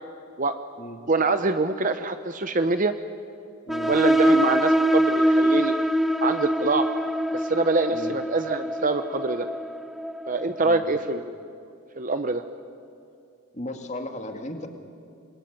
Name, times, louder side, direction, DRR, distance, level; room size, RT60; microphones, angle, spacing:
voice 1, 1.1-2.9 3.9-5.7 6.2-6.9 7.3-9.5 10.3-11.4 12.0-12.4, right 3 dB, 35° right, 9 dB, 0.8 m, -25 dB
sound 1, 3.7-11.0, equal, ahead, 0.5 m, -24 dB
voice 2, 13.5-14.7, left 1 dB, 30° left, 5 dB, 2.2 m, -35 dB
26.5 x 21.5 x 9.4 m, 2.6 s
head